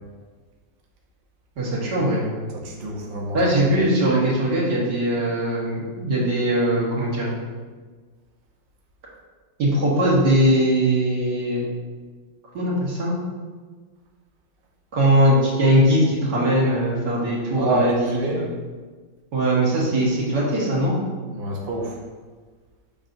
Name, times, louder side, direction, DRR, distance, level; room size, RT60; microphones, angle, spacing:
voice 1, 1.6-2.2 3.3-7.3 9.6-11.6 12.5-13.1 14.9-18.2 19.3-20.9, right 1 dB, 65° right, -5 dB, 2.2 m, -20 dB
voice 2, 2.5-3.4 17.5-18.4 21.3-22.0, right 2 dB, 45° right, -1 dB, 0.8 m, -27 dB
7.0 x 5.7 x 2.6 m, 1.4 s
omnidirectional pair, 2.0 m